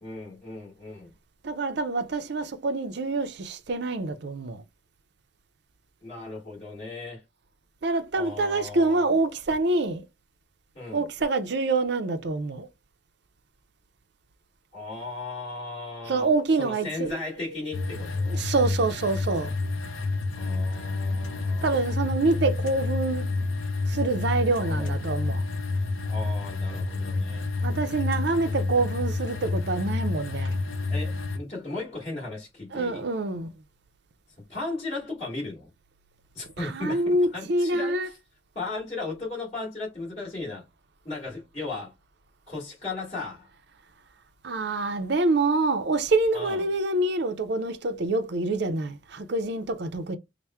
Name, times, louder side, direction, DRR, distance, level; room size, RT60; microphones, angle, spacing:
voice 1, 0.0-1.1 6.0-7.2 8.1-9.2 10.7-11.0 14.7-16.3 16.6-18.4 20.3-21.7 24.6-25.0 26.0-27.5 30.9-33.0 34.5-35.7 36.3-37.0 37.3-38.2 38.6-40.6 41.0-41.9 42.5-43.5 46.3-46.6, left 3 dB, 30° left, 1.9 m, -36 dB
voice 2, 1.4-4.6 7.8-10.0 10.9-12.7 16.1-17.2 17.5-17.6 18.0-18.1 18.3-19.5 21.6-23.3 23.9-25.4 27.6-30.6 32.7-33.5 36.6-38.1 44.4-50.2, right 2 dB, 55° right, 0.5 m, -26 dB
sound 1, 17.7-31.4, left 3 dB, 80° left, 0.7 m, -29 dB
3.4 x 2.1 x 4.3 m
head